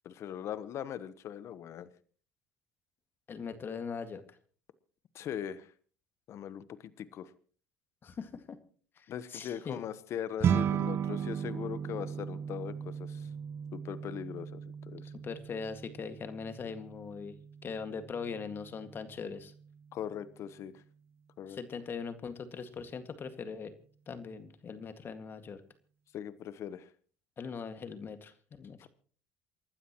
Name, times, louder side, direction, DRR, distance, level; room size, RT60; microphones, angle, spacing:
voice 1, 0.0-1.9 5.1-5.7 6.3-7.3 9.1-13.3 13.7-14.6 14.9-15.1 19.9-20.8 21.4-21.6 26.1-26.9 28.8-28.9, left 9 dB, 55° left, 15 dB, 1.1 m, -40 dB
voice 2, 3.3-4.2 8.0-8.6 9.0-9.8 15.2-17.3 17.6-19.5 21.5-23.7 24.1-25.6 27.4-28.9, left 5 dB, 40° left, 9 dB, 2.0 m, -41 dB
sound 1, 10.4-19.9, right 8 dB, 50° right, 1.1 m, -36 dB
28.5 x 12.5 x 3.1 m, 0.43 s
supercardioid pair, 80°, 6 cm